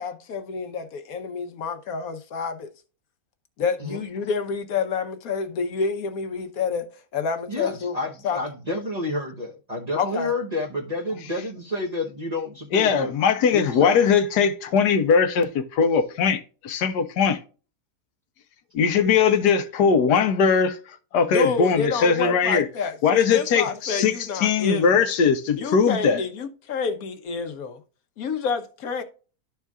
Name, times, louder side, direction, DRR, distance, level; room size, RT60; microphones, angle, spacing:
voice 1, 0.0-2.7 3.6-6.9 7.1-8.0 8.2-8.4 10.0-10.3 21.3-25.1 25.6-27.8 28.2-29.0, left 5 dB, 65° left, 1.2 m, -28 dB
voice 2, 7.5-13.2 13.5-14.1, left 2 dB, 35° right, 0.7 m, -30 dB
voice 3, 12.7-17.4 18.7-20.8 21.1-22.6 23.0-26.2, left 6 dB, 85° left, 1.4 m, -20 dB
12.0 x 4.5 x 2.3 m
omnidirectional pair, 1.7 m